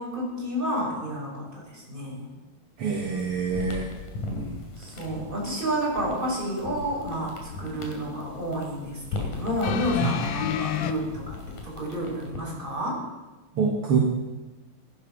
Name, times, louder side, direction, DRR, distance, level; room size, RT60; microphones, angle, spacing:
voice 1, 0.0-2.3 4.8-13.0, equal, 15° right, -4 dB, 5.7 m, -30 dB
sound 1, 2.8-12.6, left 3 dB, 60° left, 4.0 m, -38 dB
voice 2, 2.8-3.9 4.3-4.6 10.0-10.1 13.6-14.0, right 5 dB, 50° right, 0 dB, 2.1 m, -26 dB
sound 2, 9.6-10.9 11.9-12.0, left 10 dB, 80° left, 2.6 m, -28 dB
15.0 x 12.5 x 6.1 m, 1.1 s
omnidirectional pair, 4.2 m